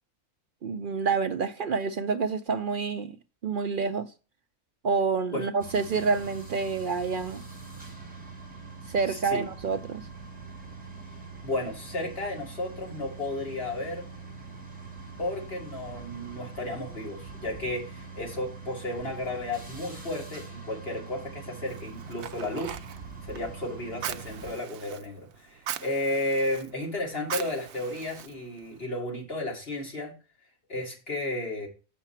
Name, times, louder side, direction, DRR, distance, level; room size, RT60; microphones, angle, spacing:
voice 1, 0.6-3.1 3.4-4.1 4.8-7.4 8.9-10.1, right 5 dB, 60° right, 0.5 m, -28 dB
sound 1, 5.6-24.5, right 4 dB, 5° right, 1.9 m, -43 dB
voice 2, 9.1-9.4 11.4-14.1 15.2-22.8 23.2-30.1 30.7-31.7, left 1 dB, 45° left, 2.6 m, -33 dB
Fire, 21.7-28.8, right 11 dB, 85° right, 1.0 m, -41 dB
7.4 x 5.8 x 4.3 m
omnidirectional pair, 1.4 m